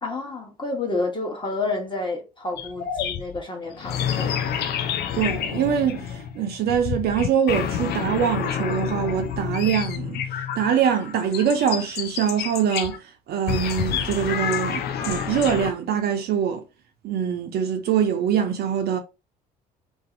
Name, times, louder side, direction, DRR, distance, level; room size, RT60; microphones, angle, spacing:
voice 1, 0.0-4.5, left 3 dB, 20° left, 1.0 m, -30 dB
sound 1, 2.6-13.0 13.5-15.7, left 8 dB, 50° left, 0.5 m, -29 dB
voice 2, 5.1-10.2 10.6-13.0 13.3-16.6 17.0-19.0, right 8 dB, 50° right, 0.5 m, -23 dB
2.6 x 2.0 x 2.5 m
hypercardioid pair, 55°, 21 cm